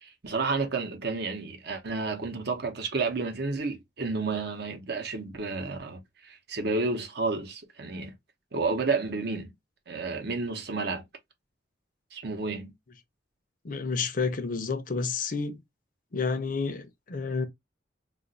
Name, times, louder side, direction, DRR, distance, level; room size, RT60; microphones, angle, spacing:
voice 1, 0.0-8.1 8.5-9.5 9.9-11.0 12.1-12.7, right 3 dB, 60° right, 0.8 m, -31 dB
voice 2, 13.6-15.6 16.1-17.4, left 4 dB, 45° left, 0.6 m, -30 dB
2.5 x 2.4 x 3.9 m
head